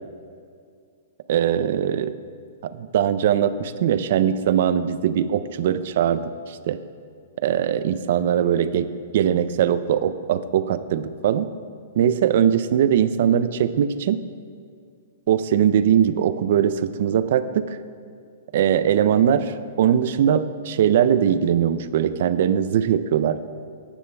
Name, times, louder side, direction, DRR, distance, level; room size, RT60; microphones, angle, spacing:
voice 1, 1.3-2.1 2.6-6.8 7.4-8.9 9.1-11.5 12.0-14.2 15.3-17.8 18.5-23.4, right 9 dB, 60° right, 13 dB, 0.4 m, -21 dB
14.0 x 9.8 x 2.3 m, 2.2 s
hypercardioid pair, 145°, 0 cm